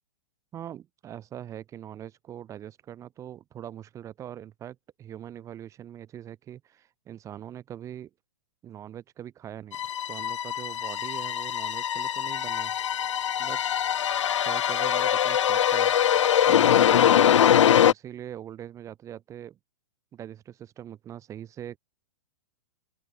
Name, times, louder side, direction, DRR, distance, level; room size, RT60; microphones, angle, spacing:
voice 1, 0.5-8.1 8.6-12.8 13.4-13.6 14.4-15.9 16.4-17.3 17.9-19.6 20.1-21.8, right 10 dB, 20° right, 1.2 m, -42 dB
sound 1, 9.7-17.9, left 9 dB, 80° left, 0.6 m, -22 dB
open air
hypercardioid pair, 135°, 15 cm